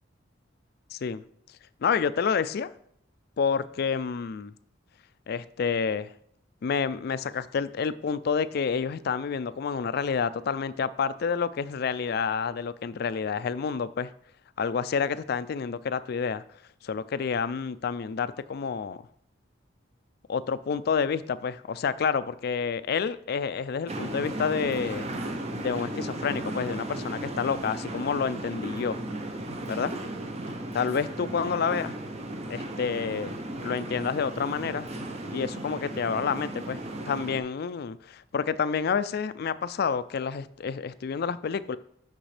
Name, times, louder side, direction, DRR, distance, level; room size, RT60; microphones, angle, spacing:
voice 1, 0.9-1.2 1.8-2.7 3.4-4.5 5.3-6.1 6.6-14.1 14.6-16.4 16.8-19.0 20.3-25.1 25.5-29.0 29.7-29.9 30.7-31.9 32.5-33.3 33.6-34.9 35.3-36.8 37.1-41.8, left 6 dB, 55° left, 14 dB, 0.4 m, -29 dB
sound 1, 23.9-37.4, right 1 dB, 35° right, 0.7 m, -35 dB
8.7 x 6.0 x 3.3 m, 0.67 s
head